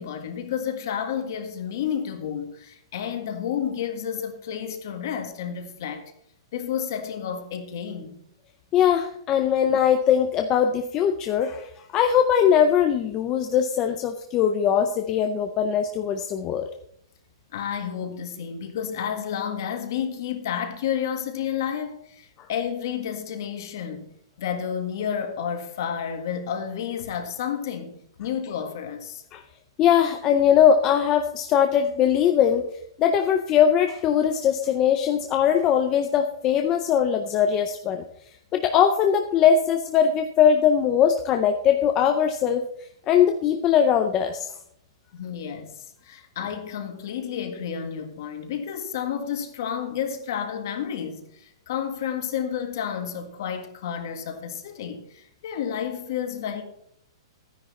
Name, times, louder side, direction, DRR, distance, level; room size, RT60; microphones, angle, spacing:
voice 1, 0.0-6.0 6.5-8.2 17.5-24.1 24.4-29.2 45.1-56.6, left 8 dB, 40° left, 1.7 m, -31 dB
voice 2, 8.7-16.7 29.3-29.4 29.8-32.7 33.0-38.0 38.5-42.7 43.1-44.5, left 8 dB, 15° left, 0.5 m, -21 dB
12.5 x 10.0 x 4.2 m
hypercardioid pair, 180°, 3 cm